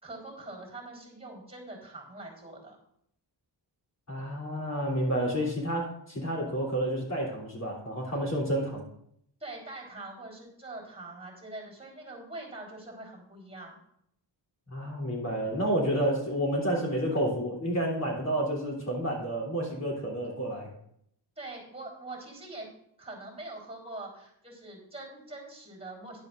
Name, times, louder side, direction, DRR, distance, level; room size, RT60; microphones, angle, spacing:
voice 1, 0.0-2.8 9.4-13.8 20.2-20.4 21.4-22.7 23.0-26.2, right 2 dB, 15° right, 0 dB, 3.9 m, -43 dB
voice 2, 4.1-8.8 14.7-20.7, right 1 dB, 35° left, -2 dB, 3.3 m, -30 dB
12.0 x 11.0 x 2.5 m, 0.72 s
cardioid pair, 95°, 44 cm